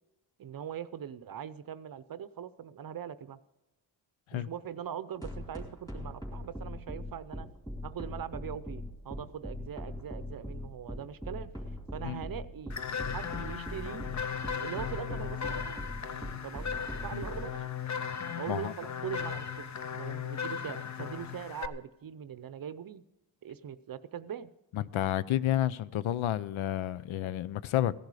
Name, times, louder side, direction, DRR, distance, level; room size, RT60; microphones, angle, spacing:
voice 1, 0.4-3.4 4.3-7.5 7.8-11.5 11.9-12.8 13.1-14.1 14.6-15.8 16.4-17.6 18.4-23.0 23.4-24.5, right 9 dB, 50° right, 0.7 m, -41 dB
sound 1, 5.2-17.5, left 1 dB, 5° left, 2.6 m, -40 dB
sound 2, 12.7-21.7, left 7 dB, 35° left, 0.7 m, -37 dB
voice 2, 24.7-27.9, left 12 dB, 90° left, 0.7 m, -30 dB
16.0 x 10.5 x 4.9 m
cardioid pair, 115°, 47 cm